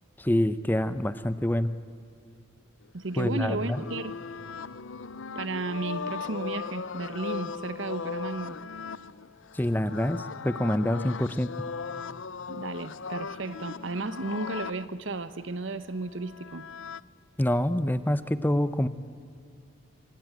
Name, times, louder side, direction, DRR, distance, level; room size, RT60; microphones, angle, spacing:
voice 1, 0.2-1.7 3.2-3.8 9.5-11.5 17.4-18.9, left 1 dB, 10° left, 13 dB, 0.7 m, -26 dB
voice 2, 2.9-4.2 5.3-8.6 12.5-16.7, right 3 dB, 75° right, 13 dB, 1.0 m, -34 dB
sound 1, 3.1-14.9 16.0-17.0, left 5 dB, 80° left, 0.7 m, -38 dB
25.5 x 25.5 x 9.1 m, 2.7 s
head